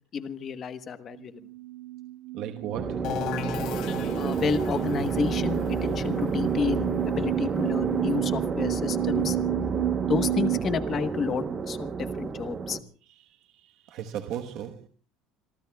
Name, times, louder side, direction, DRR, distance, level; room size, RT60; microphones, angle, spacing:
voice 1, 0.1-1.4 4.2-9.4 10.1-12.8, left 5 dB, 25° left, 1.1 m, -30 dB
sound 1, 1.1-10.6, right 17 dB, 85° right, 2.0 m, -32 dB
voice 2, 2.3-3.1 13.0-14.9, right 9 dB, 45° right, 1.2 m, -37 dB
sound 2, 2.7-12.8, right 5 dB, 20° right, 1.0 m, -30 dB
chesse whirl, 3.0-8.6, left 9 dB, 45° left, 2.8 m, -38 dB
26.5 x 23.0 x 2.3 m
cardioid pair, 180°, 0 cm